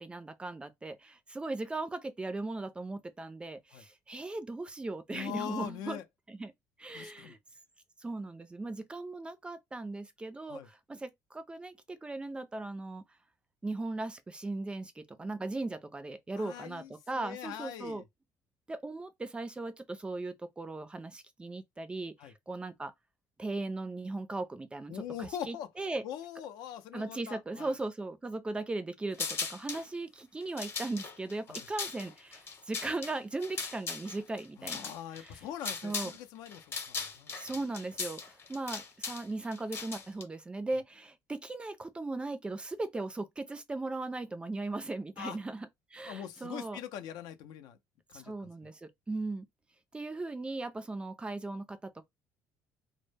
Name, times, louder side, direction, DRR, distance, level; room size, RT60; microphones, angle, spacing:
voice 1, 0.0-6.0 6.3-6.5 6.8-7.4 8.0-13.0 13.6-18.0 18.7-22.9 23.4-26.0 26.9-35.4 35.8-36.1 37.3-45.7 45.9-46.8 48.1-49.5 49.9-52.0, right 2 dB, 15° right, 0.4 m, -38 dB
voice 2, 5.1-6.0 6.9-7.4 10.5-10.7 16.4-18.0 22.2-22.3 24.9-25.7 26.0-27.7 31.5-31.7 34.6-37.3 45.2-45.4 46.1-47.8 48.1-48.7, left 10 dB, 80° left, 0.5 m, -42 dB
sound 1, 29.1-29.9 30.4-36.2 36.5-40.2, left 5 dB, 35° left, 0.8 m, -39 dB
2.1 x 2.0 x 3.2 m
cardioid pair, 110°, 7 cm